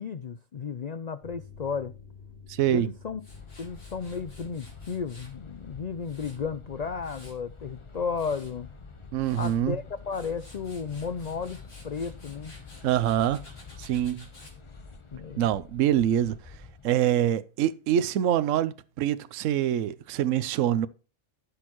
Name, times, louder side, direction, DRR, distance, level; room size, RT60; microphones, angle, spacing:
voice 1, 0.0-1.9 2.7-3.2 3.6-8.7 9.3-11.6 11.8-12.5 15.1-15.5, left 5 dB, 80° left, 0.3 m, -34 dB
sound 1, 1.2-13.3 13.6-13.7, left 5 dB, 45° left, 2.9 m, -53 dB
voice 2, 2.5-2.9 9.1-9.8 12.8-13.4 13.8-14.3 15.4-16.4 16.8-20.9, right 11 dB, 70° right, 1.0 m, -25 dB
Tools, 3.2-5.4 5.8-7.5 7.9-8.5 9.0-9.6 10.0-14.6, left 1 dB, 60° left, 4.0 m, -53 dB
sound 2, 3.3-16.9, left 4 dB, 25° left, 0.8 m, -47 dB
15.0 x 6.4 x 3.0 m
omnidirectional pair, 1.4 m